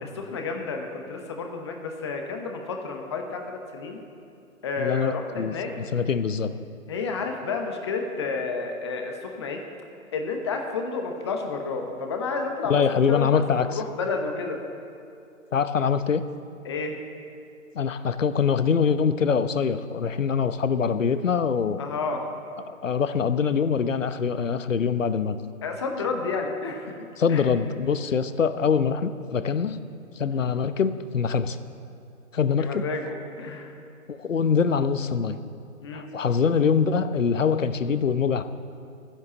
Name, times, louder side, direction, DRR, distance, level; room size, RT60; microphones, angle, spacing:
voice 1, 0.0-4.0 4.6-5.7 6.9-9.6 10.1-14.6 16.6-17.0 21.8-22.3 25.6-26.9 27.3-27.4 30.3-30.5 32.6-33.7 35.8-36.1, left 4 dB, 20° left, 3 dB, 0.9 m, -31 dB
voice 2, 4.8-6.5 12.7-13.8 15.5-16.2 17.7-21.8 22.6-25.4 27.2-29.8 30.2-31.6 32.3-32.8 34.1-35.4 35.9-38.4, left 6 dB, 65° left, 12 dB, 0.9 m, -24 dB
13.5 x 10.5 x 7.0 m, 2.6 s
figure-of-eight pair, 140°, 41 cm